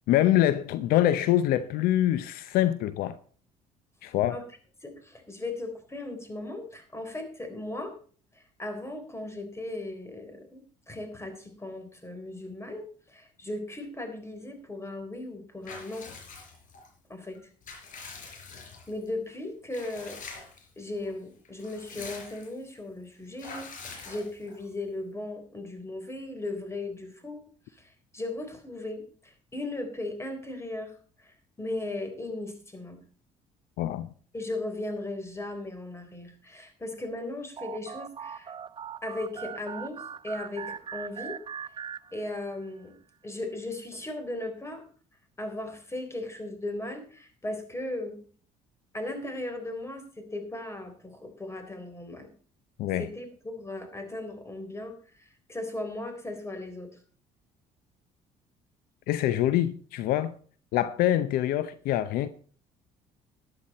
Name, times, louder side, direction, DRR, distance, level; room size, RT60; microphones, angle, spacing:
voice 1, 0.1-3.2 4.0-4.4 33.8-34.1 52.8-53.1 59.1-60.4 60.7-62.3, left 13 dB, 75° left, 0.7 m, -25 dB
voice 2, 4.8-7.9 8.3-16.1 17.1-17.5 18.3-18.5 18.9-20.2 20.8-27.4 27.7-33.0 34.3-38.5 39.0-41.4 42.1-42.9 43.2-44.9 45.4-48.2 48.9-52.3 53.0-57.0, left 2 dB, 15° left, 3.8 m, -37 dB
Water / Bathtub (filling or washing) / Liquid, 15.6-16.9 17.3-19.1 19.7-20.7 21.0-21.1 21.4-22.6 23.4-24.7, left 4 dB, 60° left, 4.9 m, -44 dB
sound 1, 37.6-42.7, right 7 dB, 30° right, 0.5 m, -40 dB
12.5 x 10.5 x 4.1 m
supercardioid pair, 75°, 15 cm